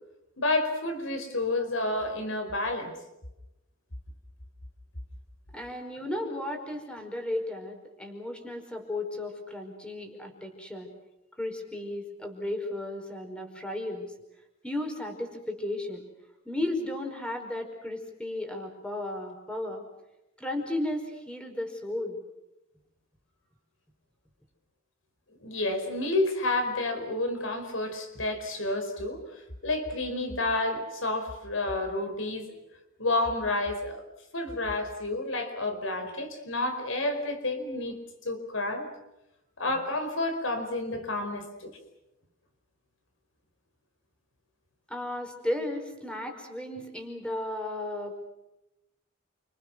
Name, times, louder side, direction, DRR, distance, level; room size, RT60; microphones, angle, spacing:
voice 1, 0.4-2.9 25.4-29.2 29.6-32.5 33.0-34.0 34.3-38.0 38.2-38.9 39.6-41.8, left 2 dB, 85° left, 6 dB, 4.8 m, -30 dB
voice 2, 5.5-10.9 11.4-14.1 14.6-16.0 16.4-19.8 20.4-22.2 44.9-48.2, left 1 dB, 5° left, 4 dB, 5.1 m, -34 dB
29.5 x 26.5 x 6.4 m, 0.91 s
head